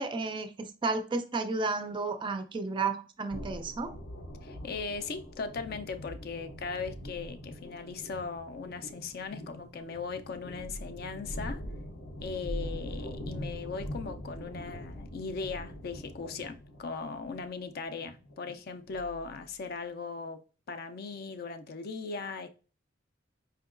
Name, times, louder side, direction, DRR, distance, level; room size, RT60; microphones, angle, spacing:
voice 1, 0.0-4.0, right 3 dB, 25° right, 0.3 m, -32 dB
sound 1, 3.3-19.5, equal, 85° left, 0.7 m, -42 dB
voice 2, 4.4-11.6 12.2-20.4 20.7-22.5, left 4 dB, 50° left, 0.4 m, -38 dB
4.4 x 2.8 x 2.4 m
head